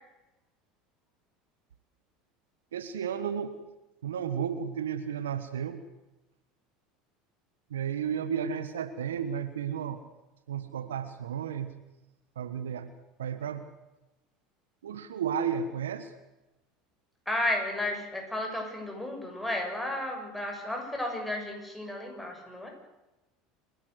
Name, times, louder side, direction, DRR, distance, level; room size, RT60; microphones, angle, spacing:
voice 1, 2.7-3.6 4.0-5.8 7.7-10.0 10.5-11.7 12.3-12.9 13.2-13.6 14.8-16.1, right 8 dB, 85° right, 11 dB, 1.4 m, -33 dB
voice 2, 17.3-22.7, left 1 dB, 5° left, 2 dB, 7.3 m, -33 dB
28.5 x 12.0 x 8.1 m, 0.98 s
hypercardioid pair, 80°, 0 cm